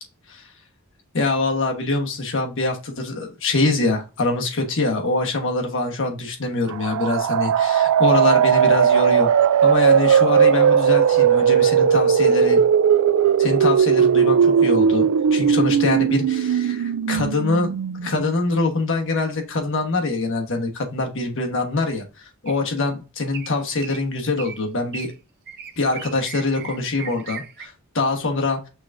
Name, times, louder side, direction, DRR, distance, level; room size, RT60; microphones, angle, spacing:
voice 1, 1.1-9.3 9.6-12.6 13.4-15.0 15.3-17.7 18.0-25.1 25.8-28.6, left 3 dB, 60° left, 3 dB, 1.2 m, -24 dB
sound 1, 6.7-18.4, right 7 dB, 85° right, 0.4 m, -17 dB
sound 2, 22.5-22.8 23.3-23.6 23.8-24.0 24.4-24.6 24.9-25.1 25.5-27.7, right 7 dB, 50° right, 0.7 m, -37 dB
6.0 x 3.5 x 2.6 m, 0.30 s
head